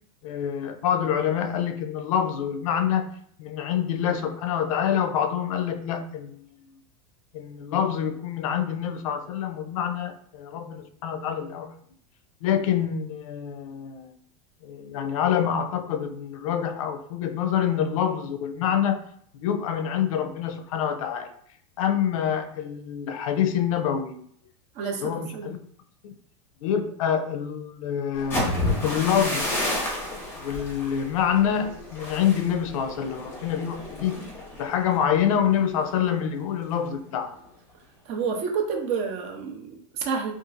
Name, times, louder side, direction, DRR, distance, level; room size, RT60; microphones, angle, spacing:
voice 1, 0.2-3.1 3.4-6.8 7.3-11.7 12.4-14.1 14.6-19.0 19.3-21.3 21.8-24.2 25.0-25.6 26.0-26.1 26.6-28.5 28.8-29.7 30.4-34.2 34.5-37.4, left 9 dB, 75° left, 8 dB, 0.4 m, -26 dB
voice 2, 24.7-25.5 38.0-40.3, right 5 dB, 40° right, 2 dB, 0.6 m, -29 dB
sound 1, 28.1-36.0 36.4-36.7 37.0-37.5, left 1 dB, 15° left, 0.7 m, -31 dB
2.9 x 2.4 x 2.5 m, 0.63 s
supercardioid pair, 155°, 17 cm